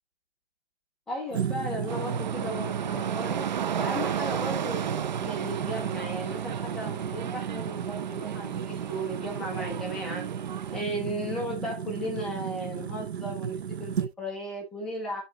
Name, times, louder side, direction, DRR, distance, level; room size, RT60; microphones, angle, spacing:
voice 1, 1.1-3.4 3.7-10.3 10.7-15.2, equal, ahead, 0.6 m, -35 dB
sound 1, 1.3-14.1, right 8 dB, 85° right, 0.7 m, -34 dB
sound 2, 1.9-10.8, right 8 dB, 45° right, 0.5 m, -34 dB
10.5 x 4.0 x 2.9 m
hypercardioid pair, 170°, 31 cm